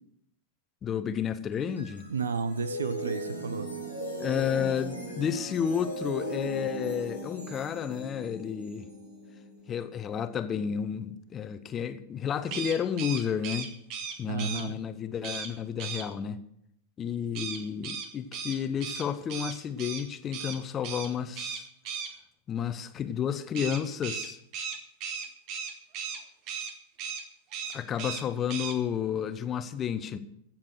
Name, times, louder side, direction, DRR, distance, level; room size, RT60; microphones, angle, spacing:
voice 1, 0.8-2.1 4.2-8.9 9.7-13.7 14.2-16.4 17.0-21.7 22.5-24.4 27.7-30.2, left 8 dB, 25° left, 1.0 m, -31 dB
sound 1, 1.5-10.8, right 1 dB, 85° right, 4.0 m, -39 dB
voice 2, 2.1-3.7 14.3-14.8, right 5 dB, 70° right, 0.7 m, -32 dB
sound 2, 12.4-14.6 15.2-15.5 15.8-16.0 17.3-20.0 20.3-20.6 20.8-21.1 21.4-22.1 23.5-26.2 26.5-26.7 27.0-27.2 27.5-28.2 28.5-28.7, right 6 dB, 40° right, 1.7 m, -36 dB
16.0 x 7.4 x 6.4 m
figure-of-eight pair, 90°, 0 cm